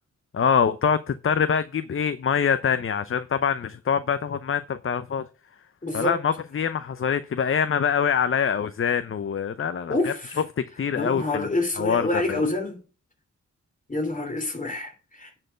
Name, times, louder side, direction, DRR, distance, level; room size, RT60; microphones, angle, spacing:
voice 1, 0.3-5.3 5.9-10.1 10.8-11.5 11.8-12.4, left 7 dB, 40° left, 0.7 m, -24 dB
voice 2, 5.8-6.2 9.9-10.4 10.9-12.8 13.9-15.4, left 2 dB, 25° left, 3.0 m, -27 dB
9.8 x 4.5 x 7.4 m
wide cardioid pair, 90°, 31 cm